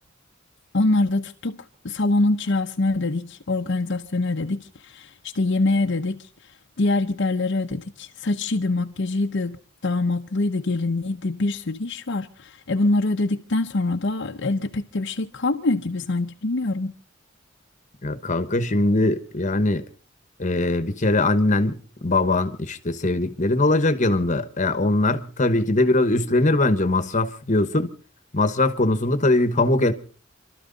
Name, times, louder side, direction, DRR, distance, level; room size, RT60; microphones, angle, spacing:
voice 1, 0.7-6.3 6.8-16.9, left 2 dB, 65° left, 0.8 m, -24 dB
voice 2, 18.0-19.8 20.4-27.9 28.3-29.9, left 2 dB, 40° left, 1.2 m, -21 dB
28.0 x 13.0 x 4.0 m
head